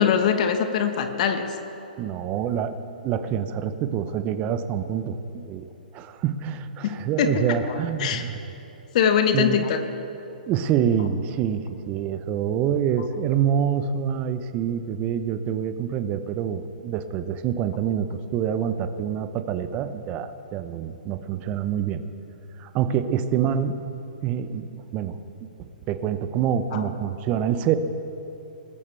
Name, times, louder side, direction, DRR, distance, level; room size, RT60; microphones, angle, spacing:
voice 1, 0.0-1.5 6.8-7.4 8.0-8.2 8.9-9.8 26.7-26.8, left 7 dB, 50° left, 7 dB, 1.2 m, -22 dB
voice 2, 2.0-2.7 3.0-5.7 5.9-8.4 9.3-9.7 10.5-22.0 22.6-23.8 24.2-25.2 25.6-27.8, right 8 dB, 30° right, 11 dB, 0.7 m, -26 dB
20.0 x 13.5 x 3.3 m, 2.9 s
hypercardioid pair, 125°, 5 cm